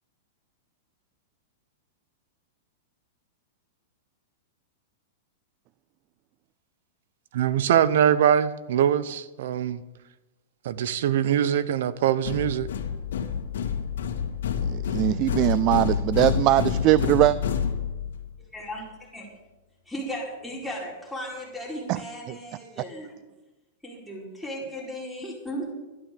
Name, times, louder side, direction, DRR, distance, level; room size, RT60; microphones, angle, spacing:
voice 1, 7.3-9.8 10.6-12.7, right 9 dB, 70° right, 0.9 m, -23 dB
sound 1, 12.3-18.3, left 7 dB, 80° left, 2.0 m, -28 dB
voice 2, 14.6-17.4 21.9-22.0 22.3-22.4, right 16 dB, 40° right, 0.4 m, -21 dB
voice 3, 18.5-18.9 19.1-19.3 19.9-23.1 23.8-25.7, equal, ahead, 4.6 m, -36 dB
12.0 x 11.0 x 6.8 m
hypercardioid pair, 140°, 0 cm